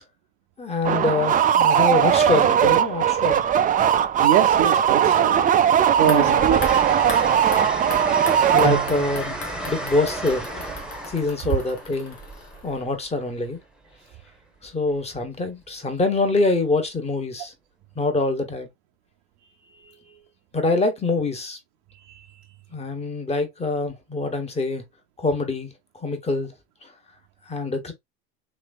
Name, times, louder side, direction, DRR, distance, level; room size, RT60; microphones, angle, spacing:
voice 1, 0.6-3.4 6.0-6.5 8.5-9.4 9.6-10.7 11.1-12.2 12.6-13.6 14.6-17.5 17.9-18.7 20.5-21.6 22.7-24.8 25.2-25.7 26.0-26.5 27.5-27.9, left 3 dB, 20° left, 1.2 m, -25 dB
sound 1, 0.8-9.2, right 9 dB, 25° right, 0.4 m, -19 dB
Train, 3.5-4.2 4.6-13.3 14.9-15.2, right 2 dB, 5° right, 1.0 m, -34 dB
voice 2, 4.2-5.4 6.0-6.6 19.6-20.2 22.1-22.3, right 11 dB, 65° right, 0.6 m, -24 dB
sound 2, 6.1-13.1 13.3-13.4, left 4 dB, 75° left, 1.5 m, -39 dB
3.3 x 3.2 x 2.4 m
hypercardioid pair, 90°, 34 cm